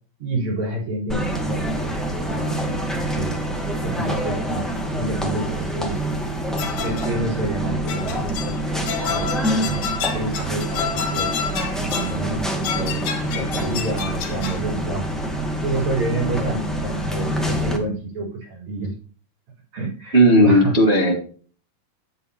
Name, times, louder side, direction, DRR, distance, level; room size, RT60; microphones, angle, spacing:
voice 1, 0.2-1.7 2.3-3.3 3.8-6.0 6.8-9.3 9.5-11.3 11.8-13.1 13.3-15.1 15.4-18.9 19.7-20.8, right 2 dB, 55° right, -1 dB, 5.4 m, -29 dB
sound 1, 1.1-17.8, right 1 dB, ahead, 0.5 m, -26 dB
sound 2, 6.6-7.2 7.9-8.6 8.9-12.2 12.6-14.6, left 7 dB, 85° left, 3.7 m, -29 dB
voice 2, 20.1-21.1, equal, 25° right, -1 dB, 1.4 m, -14 dB
9.6 x 9.2 x 2.8 m, 0.41 s
omnidirectional pair, 4.0 m